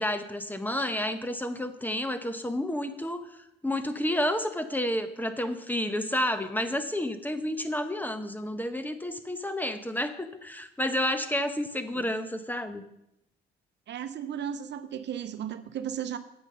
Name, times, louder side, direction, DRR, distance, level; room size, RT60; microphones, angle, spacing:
voice 1, 0.0-3.3 3.6-12.8, left 1 dB, 10° left, 9 dB, 0.9 m, -30 dB
voice 2, 13.9-16.2, right 9 dB, 60° right, 11 dB, 0.8 m, -35 dB
8.0 x 7.9 x 5.6 m, 0.82 s
cardioid pair, 90°, 20 cm